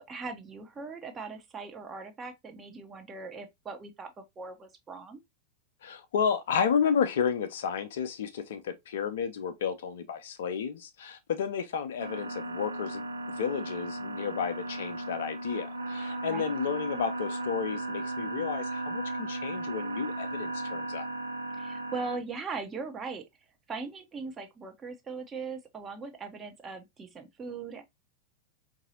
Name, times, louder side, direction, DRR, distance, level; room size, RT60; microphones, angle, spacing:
voice 1, 0.0-5.2 16.3-16.5 21.6-23.2 23.7-27.8, right 4 dB, 20° right, 0.8 m, -40 dB
voice 2, 5.8-21.1, left 7 dB, 60° left, 0.5 m, -32 dB
sound 1, 12.0-22.2, right 2 dB, 70° right, 0.5 m, -36 dB
4.7 x 2.7 x 2.7 m
figure-of-eight pair, 90°, 0 cm